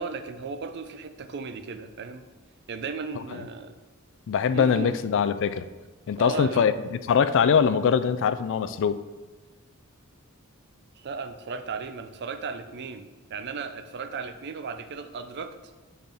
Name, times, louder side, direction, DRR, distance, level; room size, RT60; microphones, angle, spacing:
voice 1, 0.0-2.2 2.7-3.8 4.5-5.0 6.2-6.7 11.0-15.5, right 4 dB, 50° right, 9 dB, 0.5 m, -35 dB
voice 2, 4.3-5.7 6.1-9.0, left 6 dB, 60° left, 12 dB, 0.3 m, -23 dB
8.7 x 3.9 x 3.5 m, 1.3 s
head